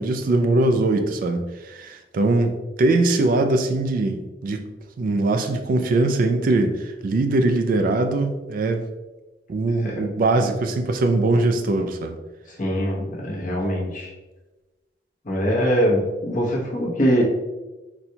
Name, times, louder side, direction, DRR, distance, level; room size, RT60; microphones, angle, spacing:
voice 1, 0.0-4.7 5.0-8.9 9.5-12.2, right 2 dB, 50° right, 6 dB, 0.3 m, -21 dB
voice 2, 12.6-14.1 15.2-17.2, equal, 45° left, -3 dB, 0.9 m, -22 dB
4.1 x 2.2 x 2.7 m, 1.1 s
head